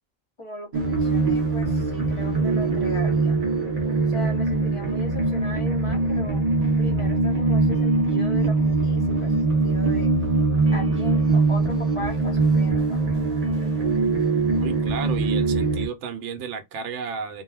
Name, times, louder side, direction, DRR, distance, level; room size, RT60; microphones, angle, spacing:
voice 1, 0.4-3.4 4.1-6.4 6.8-10.1 10.7-13.2, equal, 30° left, 0.6 m, -38 dB
sound 1, 0.7-15.9, right 3 dB, 45° right, 0.5 m, -22 dB
voice 2, 14.6-17.4, right 6 dB, 70° right, 0.9 m, -33 dB
2.2 x 2.1 x 3.2 m
omnidirectional pair, 1.3 m